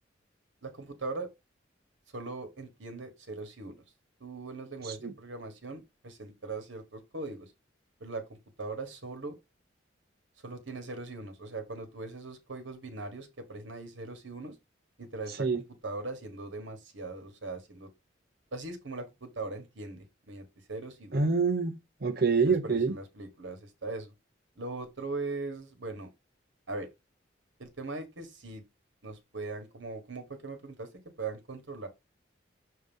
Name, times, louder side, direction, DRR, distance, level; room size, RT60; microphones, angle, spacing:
voice 1, 0.6-1.3 2.1-3.8 4.2-7.5 8.0-9.4 10.4-14.5 15.0-17.9 18.5-21.2 22.4-24.1 24.6-26.1 26.7-26.9 27.6-28.6 29.0-30.9 31.2-31.9, right 3 dB, 80° right, 1.4 m, -40 dB
voice 2, 21.1-21.8 22.0-23.0, right 4 dB, 50° right, 0.8 m, -26 dB
6.5 x 2.9 x 5.3 m
head